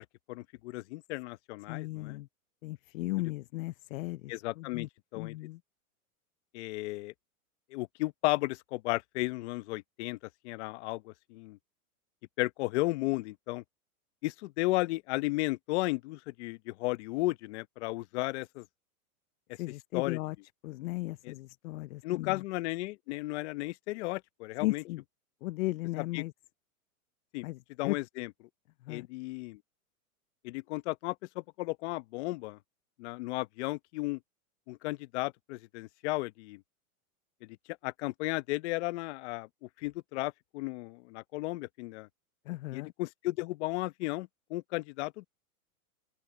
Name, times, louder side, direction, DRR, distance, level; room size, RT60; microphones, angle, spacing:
voice 1, 0.0-2.2 4.3-5.3 6.5-7.1 7.7-10.2 10.4-11.6 12.4-13.6 14.2-18.7 19.9-20.2 21.2-21.3 22.0-24.8 26.1-26.2 27.3-27.5 27.8-28.3 28.9-29.6 30.4-32.6 33.0-34.2 34.7-36.6 37.4-37.5 37.8-42.1 42.7-45.3, left 21 dB, 50° left, 1.2 m, -34 dB
voice 2, 1.7-2.3 2.6-4.9 5.1-5.6 19.5-20.4 20.6-22.4 24.6-25.0 25.4-26.3 27.4-28.0 28.8-29.1 42.5-42.9, left 19 dB, 65° left, 0.6 m, -36 dB
open air
hypercardioid pair, 140°, 43 cm